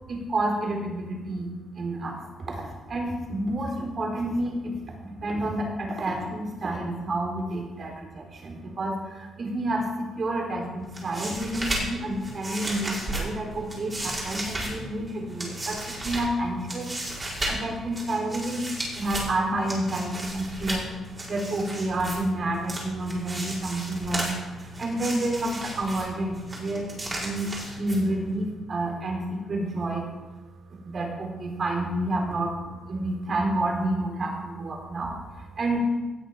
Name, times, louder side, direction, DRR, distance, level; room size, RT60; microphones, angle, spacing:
voice 1, 0.1-1.5 1.8-2.2 2.5-18.7 18.9-20.9 21.3-27.5 27.8-30.1 30.7-35.8, right 1 dB, 45° right, 0 dB, 4.1 m, -29 dB
sound 1, 10.8-28.4, right 1 dB, 25° right, 4.9 m, -35 dB
18.0 x 6.8 x 5.8 m, 1.2 s
cardioid pair, 90°, 0 cm